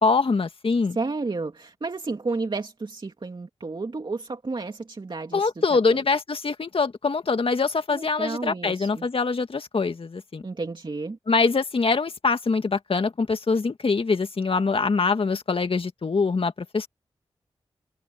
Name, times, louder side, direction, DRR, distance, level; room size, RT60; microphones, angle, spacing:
voice 1, 0.0-1.0 5.3-10.4 11.3-16.9, left 4 dB, 60° left, 2.1 m, -24 dB
voice 2, 0.9-6.0 7.9-9.1 10.4-11.2, right 3 dB, 50° right, 2.6 m, -32 dB
cardioid pair, 45°, 11 cm